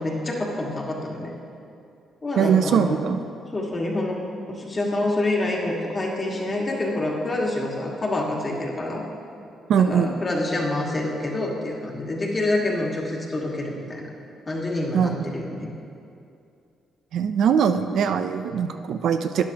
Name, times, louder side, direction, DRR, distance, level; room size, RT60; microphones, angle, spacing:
voice 1, 0.0-1.3 2.2-3.0 3.5-9.0 9.7-14.1 14.5-15.7, left 2 dB, 30° left, -2 dB, 1.7 m, -27 dB
voice 2, 2.4-3.3 9.7-10.1 14.9-15.2 17.1-19.4, right 7 dB, 70° right, 8 dB, 0.4 m, -21 dB
12.5 x 9.4 x 2.9 m, 2.5 s
cardioid pair, 90°, 0 cm